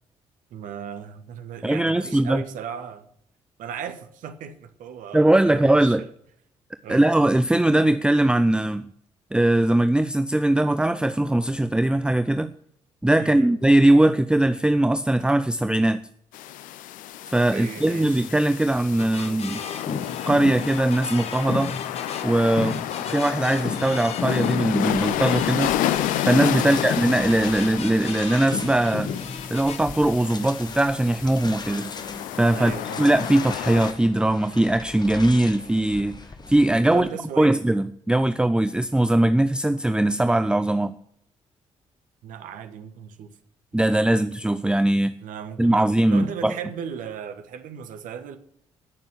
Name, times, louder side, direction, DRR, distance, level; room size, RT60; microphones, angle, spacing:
voice 1, 0.5-3.1 3.6-6.1 6.8-7.1 13.2-13.5 17.5-18.3 22.5-22.8 26.6-26.8 32.5-33.1 36.8-37.6 42.2-43.4 43.8-44.1 45.2-48.4, right 7 dB, 60° right, 1.3 m, -36 dB
voice 2, 1.6-2.4 5.1-6.0 6.9-8.9 9.3-12.5 13.0-16.0 17.3-19.6 20.3-21.7 22.2-22.7 23.1-25.7 26.3-29.1 29.5-31.9 32.4-32.7 33.0-36.2 36.5-37.1 37.4-40.9 43.7-45.2 45.6-46.5, right 1 dB, 5° right, 0.6 m, -20 dB
sound 1, 16.3-33.9, left 12 dB, 60° left, 0.6 m, -30 dB
sound 2, 19.0-29.8, left 5 dB, 40° left, 1.5 m, -33 dB
sound 3, 24.9-37.1, left 3 dB, 25° left, 1.5 m, -40 dB
16.5 x 6.9 x 6.5 m
figure-of-eight pair, 40°, 15 cm